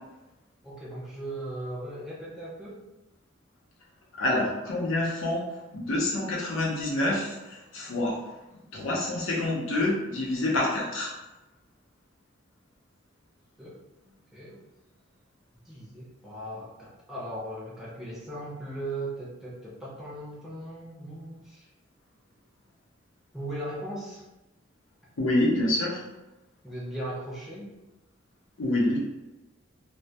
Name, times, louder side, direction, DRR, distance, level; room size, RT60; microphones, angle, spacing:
voice 1, 0.6-2.8 13.6-13.8 14.3-14.6 15.7-21.7 23.3-24.2 26.6-27.7, right 1 dB, ahead, -7 dB, 0.4 m, -38 dB
voice 2, 4.2-5.4 5.7-7.3 7.7-8.2 8.7-11.1 25.2-26.0 28.6-29.0, left 1 dB, 85° left, -4 dB, 0.6 m, -27 dB
2.1 x 2.1 x 2.7 m, 1.0 s
head